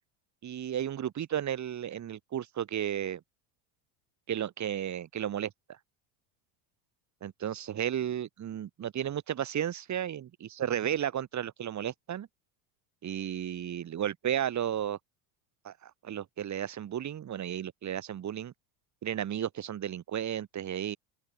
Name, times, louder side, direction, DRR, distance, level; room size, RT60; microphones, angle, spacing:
voice 1, 0.4-3.2 4.3-5.5 7.2-12.3 13.0-15.0 15.6-18.5 19.0-21.0, right 10 dB, 35° right, 6.7 m, -33 dB
open air
supercardioid pair, 120°, 48 cm